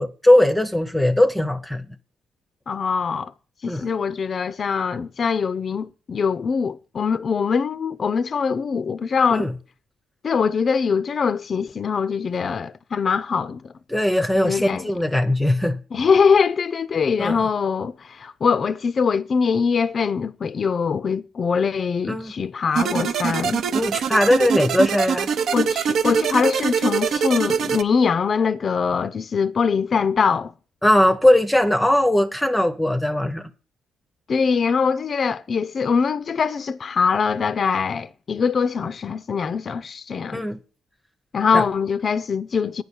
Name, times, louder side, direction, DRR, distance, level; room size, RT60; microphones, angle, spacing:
voice 1, 0.0-1.8 3.7-3.9 9.3-9.5 13.9-15.8 17.2-17.5 22.1-22.3 23.7-25.3 30.8-33.5 40.3-40.6 41.5-41.6, left 1 dB, 5° left, 0.7 m, -19 dB
voice 2, 2.7-3.3 3.6-9.5 10.2-13.6 14.4-14.9 15.9-23.6 25.5-30.5 34.3-40.4 41.3-42.8, left 5 dB, 45° left, 0.4 m, -22 dB
sound 1, 22.8-27.8, right 7 dB, 65° right, 0.7 m, -23 dB
9.3 x 5.5 x 8.2 m
cardioid pair, 90°, 0 cm